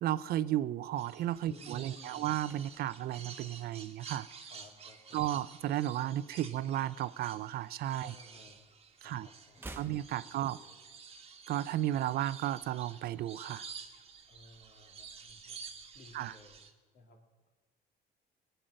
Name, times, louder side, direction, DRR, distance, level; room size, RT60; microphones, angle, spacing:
voice 1, 0.0-4.3 5.1-8.1 9.0-9.3 9.8-10.6 11.5-13.7 16.1-16.3, right 13 dB, 65° right, 17 dB, 0.5 m, -34 dB
sound 1, 1.0-16.7, right 6 dB, 35° right, 1.3 m, -51 dB
voice 2, 1.4-2.4 4.5-5.4 8.0-8.6 9.0-10.8 14.3-15.6 15.9-16.6 16.9-17.5, left 2 dB, 60° left, 2 dB, 2.8 m, -58 dB
sound 2, 2.4-4.8 5.0-5.3 5.6-7.1 7.4-8.7 9.0-11.1 11.3-11.4, right 2 dB, 15° right, 1.0 m, -54 dB
19.5 x 9.1 x 6.4 m, 1.4 s
cardioid pair, 110°, 17 cm